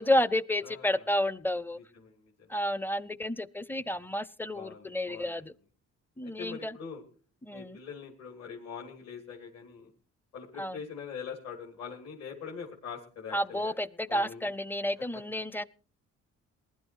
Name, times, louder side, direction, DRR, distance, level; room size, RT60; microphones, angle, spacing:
voice 1, 0.0-1.8 2.5-5.5 6.2-6.8 7.4-7.8 10.6-10.8 13.3-15.7, left 1 dB, 5° left, 0.6 m, -31 dB
voice 2, 0.6-1.1 1.9-2.5 4.5-5.3 6.2-7.0 7.5-9.9 10.3-13.8 14.1-14.5, left 6 dB, 60° left, 3.1 m, -43 dB
20.0 x 11.5 x 4.6 m
cardioid pair, 90°, 30 cm